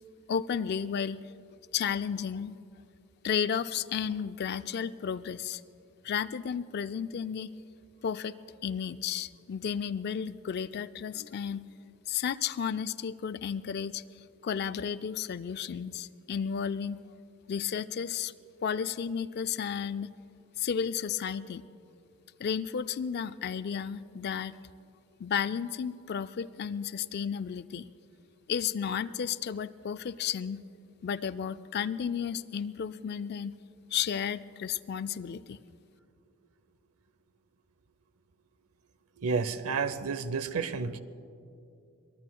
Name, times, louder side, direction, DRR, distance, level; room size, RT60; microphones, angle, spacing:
voice 1, 0.3-1.2 1.7-2.6 3.2-5.6 6.0-7.5 8.0-8.4 8.6-11.7 12.1-14.0 14.4-17.0 17.5-18.3 18.6-20.1 20.6-21.6 22.4-24.6 25.2-27.8 28.5-30.6 31.0-33.6 33.9-35.6, left 7 dB, 45° left, 14 dB, 0.3 m, -33 dB
voice 2, 39.2-41.0, right 5 dB, 80° right, 13 dB, 0.7 m, -31 dB
25.5 x 20.5 x 2.3 m, 2.5 s
head